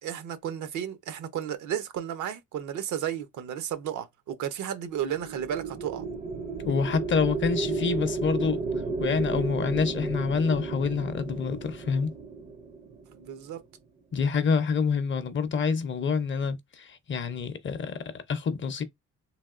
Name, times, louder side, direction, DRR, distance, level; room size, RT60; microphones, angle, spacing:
voice 1, 0.0-6.0 13.1-13.6, right 9 dB, 75° right, 0.7 m, -33 dB
sound 1, 5.0-13.5, right 3 dB, 25° right, 0.4 m, -33 dB
voice 2, 6.6-8.6 9.0-12.1 14.1-18.8, left 5 dB, 40° left, 0.6 m, -27 dB
3.4 x 2.5 x 2.4 m
cardioid pair, 90°, 30 cm